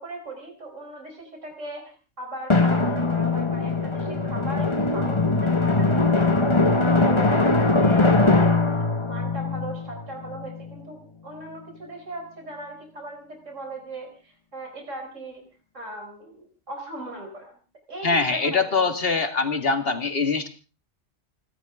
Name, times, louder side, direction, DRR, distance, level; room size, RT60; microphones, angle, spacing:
voice 1, 0.0-6.3 6.7-15.4 15.7-17.6 17.9-18.9, right 1 dB, 75° right, 3 dB, 4.7 m, -38 dB
Drum, 2.5-10.8, left 3 dB, 25° left, 1.3 m, -21 dB
voice 2, 18.0-20.5, left 4 dB, 50° left, 7 dB, 2.2 m, -23 dB
30.0 x 12.5 x 3.7 m, 0.36 s
omnidirectional pair, 1.3 m